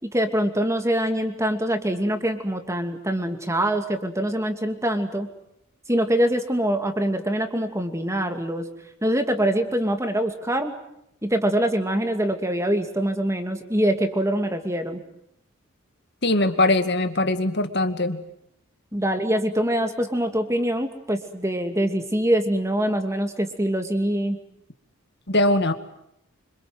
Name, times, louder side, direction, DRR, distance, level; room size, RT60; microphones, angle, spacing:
voice 1, 0.0-5.3 5.9-8.7 9.0-10.7 11.2-15.0 18.9-24.4, right 1 dB, 15° right, 6 dB, 2.6 m, -24 dB
voice 2, 16.2-18.2 25.3-25.7, left 2 dB, 50° left, 9 dB, 2.1 m, -21 dB
26.5 x 26.5 x 7.9 m, 0.75 s
head